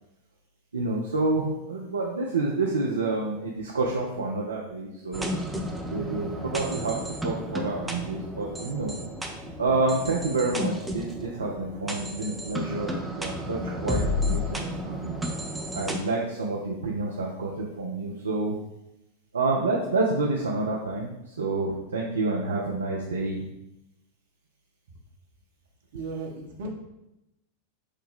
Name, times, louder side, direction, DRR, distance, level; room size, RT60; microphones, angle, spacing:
voice 1, 0.7-5.3 5.9-7.0 7.2-8.9 9.6-14.0 14.3-15.3 15.7-18.6 19.3-23.5, right 3 dB, 75° right, -2 dB, 0.5 m, -28 dB
sound 1, 5.1-16.0, left 1 dB, 5° right, 0.5 m, -32 dB
voice 2, 25.9-26.7, right 3 dB, 55° right, 0 dB, 0.9 m, -35 dB
6.3 x 2.2 x 3.5 m, 0.90 s
figure-of-eight pair, 90°, 0 cm